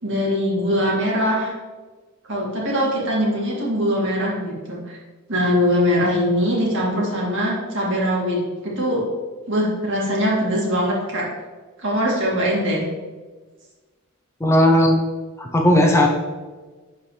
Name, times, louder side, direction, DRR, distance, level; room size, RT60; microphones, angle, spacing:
voice 1, 0.0-1.5 2.3-5.0 5.3-9.0 9.5-11.2 11.8-12.9, equal, 60° right, -4 dB, 2.2 m, -22 dB
voice 2, 14.4-15.0 15.4-16.1, left 1 dB, 10° left, 0 dB, 0.6 m, -16 dB
11.0 x 4.3 x 3.3 m, 1.3 s
head